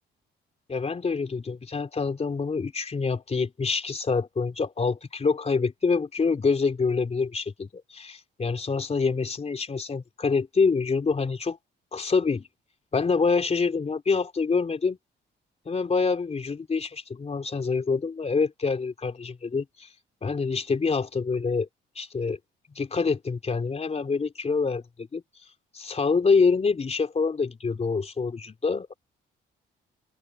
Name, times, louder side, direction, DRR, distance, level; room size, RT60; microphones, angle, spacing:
voice 1, 0.7-11.6 11.9-12.5 12.9-15.0 15.7-19.9 20.2-21.7 22.0-22.4 22.8-25.2 25.7-29.0, left 4 dB, 30° left, 3.5 m, -26 dB
open air
cardioid pair, 90°, 20 cm